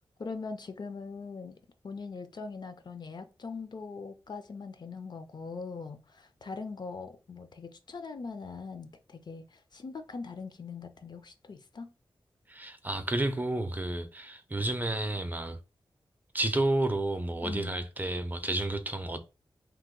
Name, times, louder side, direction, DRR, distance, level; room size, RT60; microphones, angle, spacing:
voice 1, 0.2-1.6 1.8-11.9 17.4-17.8, left 4 dB, 50° left, 0.4 m, -41 dB
voice 2, 12.5-15.6 16.3-19.2, right 2 dB, 20° right, 0.4 m, -31 dB
2.9 x 2.1 x 3.6 m
wide cardioid pair, 85°, 9 cm